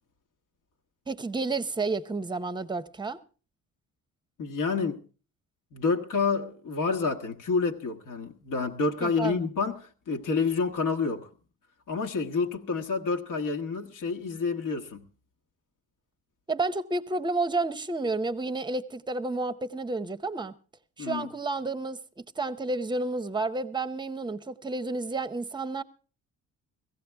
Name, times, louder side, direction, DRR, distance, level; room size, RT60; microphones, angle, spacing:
voice 1, 1.1-3.2 9.0-9.5 16.5-20.5 21.0-25.8, right 3 dB, 15° right, 0.7 m, -31 dB
voice 2, 4.4-5.0 5.7-11.3 11.9-15.0 21.0-21.3, left 4 dB, 70° left, 1.5 m, -29 dB
17.5 x 15.5 x 3.4 m
cardioid pair, 155°, 33 cm